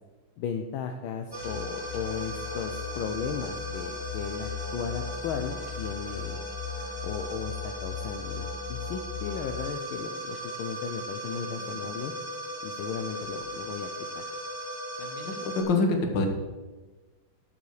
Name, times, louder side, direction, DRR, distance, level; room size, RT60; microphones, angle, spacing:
voice 1, 0.4-6.4 7.0-12.1 12.6-13.9 14.1-14.2, left 7 dB, 75° left, 5 dB, 1.5 m, -35 dB
sound 1, 1.3-15.6, left 2 dB, 10° right, 1.8 m, -36 dB
voice 2, 15.0-16.3, left 3 dB, 60° left, 4 dB, 1.9 m, -26 dB
11.5 x 7.1 x 4.8 m, 1.2 s
omnidirectional pair, 2.4 m